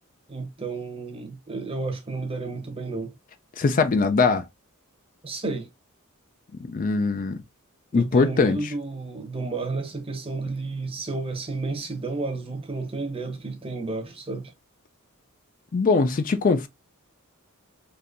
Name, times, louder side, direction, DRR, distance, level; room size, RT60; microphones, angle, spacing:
voice 1, 0.3-3.1 5.2-5.7 7.9-14.5, right 3 dB, 25° right, 0.8 m, -32 dB
voice 2, 3.6-4.5 6.7-7.4 7.9-8.6 15.7-16.7, left 4 dB, 40° left, 0.4 m, -21 dB
3.7 x 2.8 x 2.5 m
head